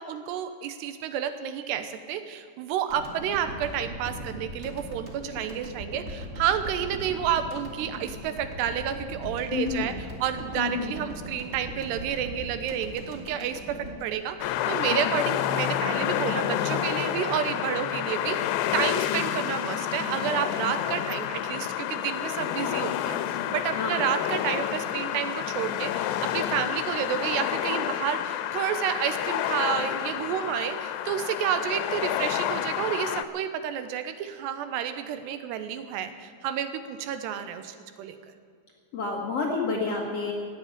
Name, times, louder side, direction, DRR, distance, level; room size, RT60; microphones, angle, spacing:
voice 1, 0.0-9.9 10.2-23.2 23.5-38.2, right 9 dB, 85° right, 10 dB, 3.0 m, -30 dB
sound 1, 2.9-15.1, equal, 40° right, 0.9 m, -40 dB
voice 2, 9.5-10.0 10.6-10.9 14.9-15.2 19.1-19.2 23.8-24.1 38.9-40.3, left 4 dB, 55° left, -1 dB, 1.9 m, -29 dB
sound 2, 14.4-33.3, left 12 dB, 90° left, 2.7 m, -29 dB
16.5 x 7.9 x 9.9 m, 2.3 s
omnidirectional pair, 4.8 m